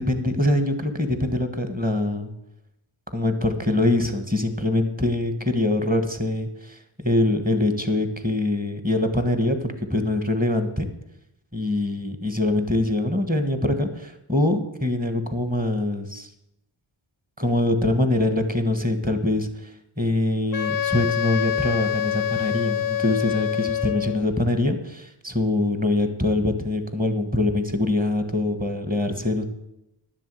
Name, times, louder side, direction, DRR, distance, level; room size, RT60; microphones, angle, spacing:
voice 1, 0.0-2.3 3.1-10.9 11.5-16.3 17.4-19.5 20.0-29.4, left 2 dB, 15° right, 8 dB, 1.5 m, -24 dB
Wind instrument woodwind instrument, 20.5-24.3, left 11 dB, 45° left, 0.4 m, -26 dB
11.0 x 7.4 x 7.7 m, 0.85 s
wide cardioid pair, 85°, 50 cm